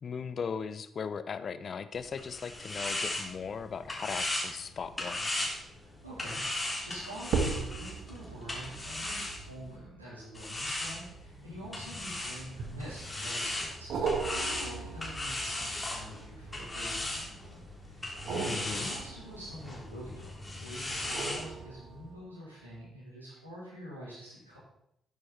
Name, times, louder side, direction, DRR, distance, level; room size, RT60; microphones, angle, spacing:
voice 1, 0.0-5.3 18.5-18.9, left 6 dB, 45° left, 13 dB, 0.7 m, -38 dB
sound 1, 1.9-9.8 10.3-21.4, left 1 dB, 20° left, 3.6 m, -38 dB
voice 2, 5.7-17.6 17.9-24.6, equal, 90° right, -8 dB, 4.0 m, -46 dB
sound 2, 6.0-6.4 7.2-11.9 12.6-13.2 13.9-16.9 18.1-20.2 20.9-22.3 22.8-22.9, right 5 dB, 60° right, 1.6 m, -38 dB
sound 3, 11.5-22.1, right 2 dB, 40° right, 3.5 m, -54 dB
12.0 x 9.7 x 4.3 m, 0.76 s
figure-of-eight pair, 40°, 0 cm